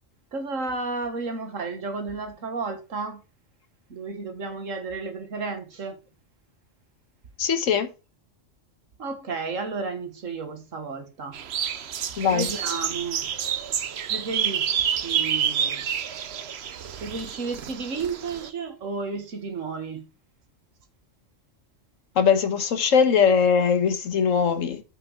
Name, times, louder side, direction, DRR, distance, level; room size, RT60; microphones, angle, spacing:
voice 1, 0.3-3.2 3.9-6.0 9.0-13.3 14.1-15.9 17.0-20.1, right 4 dB, 90° right, 1.9 m, -33 dB
voice 2, 7.4-7.9 12.2-12.5 22.1-24.8, left 6 dB, 85° left, 1.5 m, -21 dB
sound 1, 11.3-18.5, right 8 dB, 60° right, 1.0 m, -28 dB
7.8 x 6.2 x 4.7 m
omnidirectional pair, 1.3 m